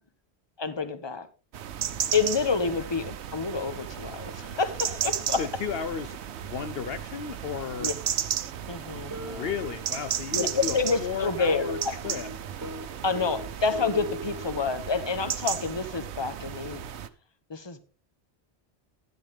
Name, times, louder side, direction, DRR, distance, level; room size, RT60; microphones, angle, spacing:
voice 1, 0.6-1.3 2.1-5.4 7.8-7.9 8.7-9.5 10.3-11.6 13.0-16.8 17.5-17.8, left 4 dB, 25° left, 11 dB, 1.0 m, -28 dB
sound 1, 1.5-17.1, right 9 dB, 85° right, 1.0 m, -34 dB
voice 2, 5.4-7.9 9.3-12.3, left 7 dB, 65° left, 11 dB, 0.9 m, -34 dB
sound 2, 9.1-14.7, equal, 15° right, 1.0 m, -40 dB
10.5 x 10.5 x 3.5 m, 0.34 s
omnidirectional pair, 1.1 m